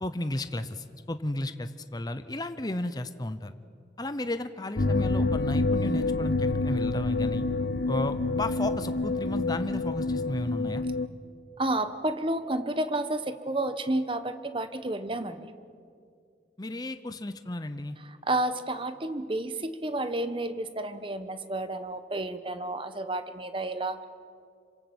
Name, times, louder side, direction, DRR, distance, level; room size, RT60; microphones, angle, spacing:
voice 1, 0.0-3.5 4.0-7.5 7.9-10.8 16.6-18.0, left 1 dB, 20° left, 10 dB, 0.7 m, -33 dB
sound 1, 4.8-11.1, left 3 dB, 65° left, 0.9 m, -27 dB
voice 2, 11.6-15.4 18.2-24.1, right 1 dB, 30° right, 10 dB, 1.2 m, -31 dB
27.0 x 25.0 x 8.0 m, 2.3 s
head